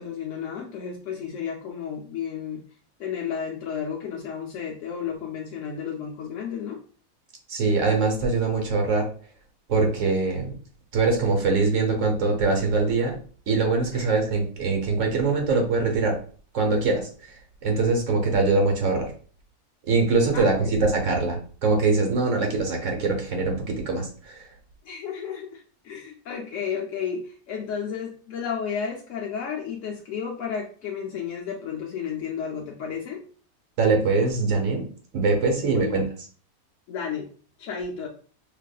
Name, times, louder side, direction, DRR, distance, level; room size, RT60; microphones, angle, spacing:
voice 1, 0.0-2.6 3.0-6.8 13.9-14.1 20.3-20.7 24.8-33.2 35.5-36.1 36.9-37.3 37.6-38.1, left 7 dB, 70° left, -1 dB, 0.8 m, -32 dB
voice 2, 7.5-9.0 9.7-10.5 10.9-13.2 13.5-16.2 16.5-19.1 19.9-24.4 33.8-34.9 35.1-36.0, right 3 dB, 60° right, 2 dB, 1.1 m, -23 dB
4.7 x 2.5 x 2.2 m, 0.44 s
omnidirectional pair, 1.6 m